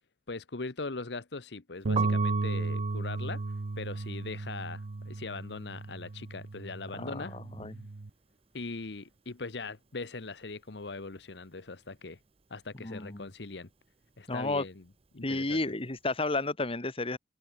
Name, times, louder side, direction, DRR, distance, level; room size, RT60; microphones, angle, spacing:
voice 1, 0.3-3.4 3.8-7.4 8.5-12.2 12.5-13.7 14.2-14.8 15.1-15.6, left 3 dB, 70° left, 1.1 m, -40 dB
Piano, 1.8-7.8 8.0-9.6 9.9-16.3, right 6 dB, 35° right, 1.1 m, -42 dB
Bass guitar, 1.8-8.1, right 2 dB, 85° right, 0.8 m, -34 dB
voice 2, 7.0-7.9 12.8-13.3 14.3-14.6 15.2-17.2, left 2 dB, 35° left, 1.9 m, -32 dB
head